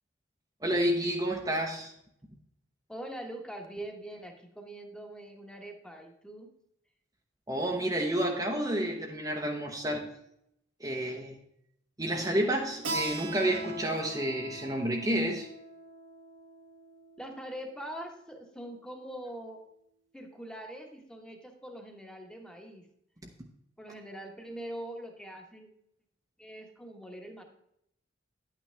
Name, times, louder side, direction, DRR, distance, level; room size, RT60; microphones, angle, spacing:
voice 1, 0.6-1.9 7.5-10.1 10.8-11.4 12.0-15.5, right 1 dB, 20° right, 0 dB, 0.9 m, -30 dB
voice 2, 2.9-6.5 17.2-19.6 20.1-22.9 23.8-25.7 26.4-27.4, right 1 dB, 5° left, 3 dB, 1.2 m, -43 dB
Keyboard (musical), 12.8-18.1, right 2 dB, 75° right, 1.5 m, -41 dB
11.0 x 9.0 x 3.4 m, 0.77 s
head